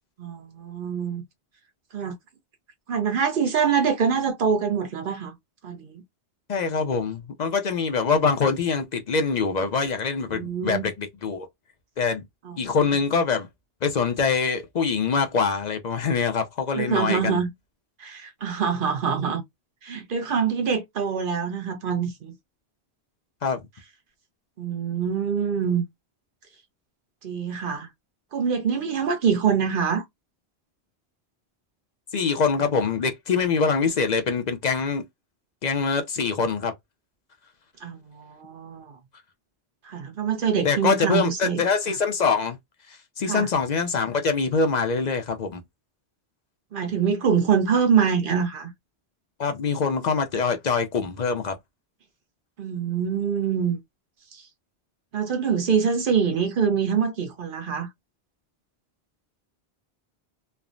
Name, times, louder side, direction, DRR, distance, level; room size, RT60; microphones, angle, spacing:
voice 1, 0.2-1.2 1.9-2.2 2.9-5.3 5.6-6.0 10.3-10.9 12.4-12.6 12.8-12.9 16.7-17.5 18.0-19.4 19.8-22.3 24.6-25.8 27.2-27.9 28.3-30.0 37.8-39.0 39.8-41.6 43.2-43.5 46.7-48.7 52.6-53.8 54.3-54.4 55.1-57.9, right 7 dB, 55° right, 0.7 m, -25 dB
voice 2, 6.5-11.5 12.0-12.2 12.6-13.5 13.8-17.4 23.4-23.6 32.1-35.0 35.6-36.7 40.6-42.6 42.9-45.6 49.4-51.5, left 5 dB, 55° left, 0.5 m, -24 dB
3.2 x 2.0 x 2.4 m
omnidirectional pair, 1.1 m